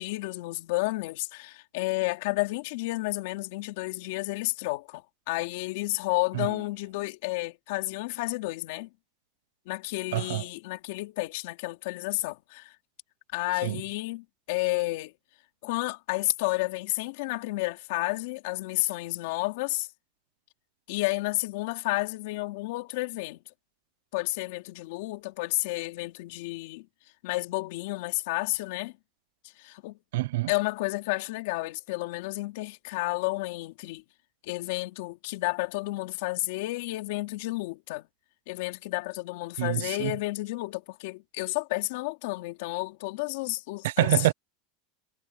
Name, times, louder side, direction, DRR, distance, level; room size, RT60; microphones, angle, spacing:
voice 1, 0.0-8.9 9.6-12.7 13.3-15.1 15.6-19.9 20.9-23.4 24.1-26.9 27.2-28.9 29.6-30.0 30.5-34.0 34.4-38.1 38.5-44.3, left 21 dB, 65° left, 3.3 m, -31 dB
voice 2, 10.1-10.4 13.6-13.8 30.1-30.5 39.6-40.1 43.8-44.3, right 16 dB, 85° right, 0.6 m, -26 dB
supercardioid pair, 170°, 0 cm